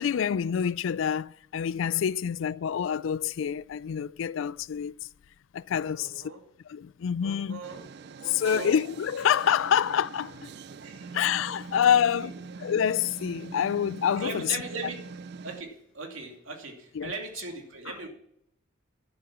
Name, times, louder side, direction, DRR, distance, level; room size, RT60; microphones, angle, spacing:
voice 1, 0.0-4.9 5.5-6.2 6.7-7.6 8.3-10.5 11.1-12.3 12.6-14.5 17.0-17.1, left 8 dB, 75° left, 0.3 m, -27 dB
voice 2, 5.9-6.4 7.2-7.9 8.2-8.8 9.6-9.8 10.8-11.2 11.9-12.3 14.2-15.0 15.4-18.1, right 3 dB, 80° right, 2.7 m, -39 dB
sound 1, 7.6-15.6, right 4 dB, 50° right, 0.5 m, -43 dB
11.5 x 7.8 x 5.8 m
head